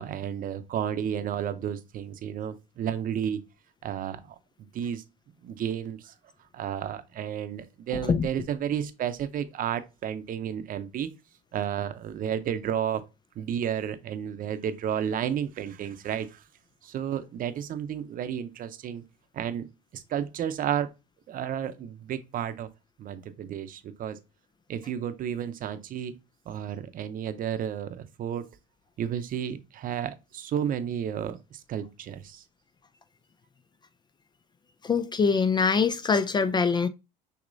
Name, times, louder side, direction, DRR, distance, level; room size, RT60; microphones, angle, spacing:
voice 1, 0.0-3.4 3.8-4.3 4.7-5.0 5.4-6.1 6.5-11.1 11.5-13.0 13.4-16.4 16.8-19.0 19.3-19.7 19.9-20.9 21.3-22.7 23.0-24.2 24.7-26.1 26.5-28.5 29.0-32.4, right 9 dB, 40° right, 0.7 m, -32 dB
voice 2, 34.8-36.9, left 5 dB, 20° left, 0.3 m, -23 dB
6.3 x 2.9 x 2.6 m
supercardioid pair, 105°, 21 cm